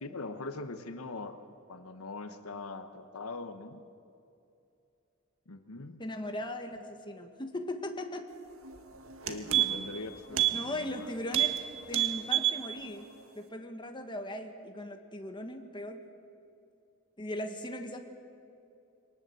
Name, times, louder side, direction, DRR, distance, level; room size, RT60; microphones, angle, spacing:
voice 1, 0.0-3.8 5.5-6.0 9.3-11.1, left 3 dB, 80° left, 9 dB, 1.2 m, -42 dB
voice 2, 6.0-8.3 9.5-9.7 10.5-11.5 11.9-13.1 13.3-16.0 17.2-18.0, left 1 dB, 20° left, 5 dB, 1.5 m, -38 dB
sound 1, 8.7-8.8 9.1-10.0 10.3-10.6 10.9-11.0 11.3-11.6 11.9-12.6 13.0-13.1, right 12 dB, 70° right, 1.7 m, -27 dB
23.0 x 19.0 x 7.8 m, 2.6 s
head